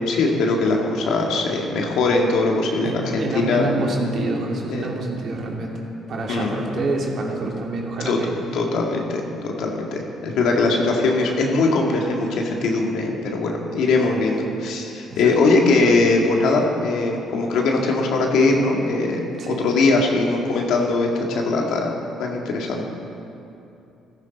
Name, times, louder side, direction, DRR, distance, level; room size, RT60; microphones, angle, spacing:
voice 1, 0.0-3.6 4.7-4.9 6.3-6.5 8.1-8.2 8.5-22.8, left 3 dB, 80° left, 0 dB, 1.9 m, -21 dB
voice 2, 2.8-8.3 15.1-15.3 19.4-19.6, right 2 dB, 55° right, -1 dB, 2.6 m, -27 dB
15.0 x 14.5 x 4.2 m, 2.7 s
cardioid pair, 100°, 0 cm